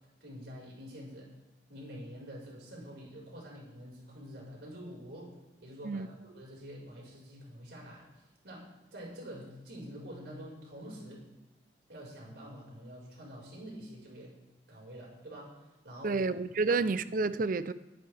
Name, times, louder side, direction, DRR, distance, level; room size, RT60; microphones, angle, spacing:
voice 1, 0.2-1.3 1.7-5.3 5.6-11.3 11.9-14.3 14.7-16.2 16.7-16.8, equal, 75° right, 5.4 m, -47 dB
voice 2, 16.0-17.7, right 3 dB, 50° right, 0.5 m, -29 dB
21.5 x 10.0 x 3.5 m
head